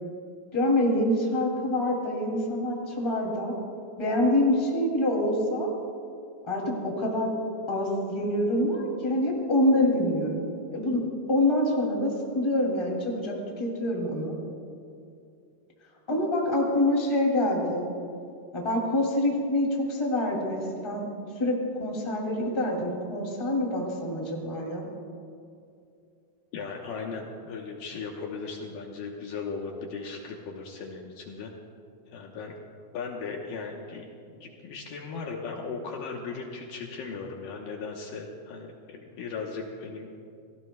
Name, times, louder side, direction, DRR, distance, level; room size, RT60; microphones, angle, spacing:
voice 1, 0.5-3.5 4.0-5.7 6.5-7.3 7.7-11.0 11.3-14.4 16.1-17.9 18.5-21.1 21.4-24.8, left 1 dB, 10° left, -1 dB, 1.9 m, -26 dB
voice 2, 26.5-31.5 32.1-32.5 32.9-40.1, left 4 dB, 70° left, 0 dB, 2.5 m, -37 dB
29.0 x 17.5 x 2.3 m, 2.5 s
omnidirectional pair, 4.5 m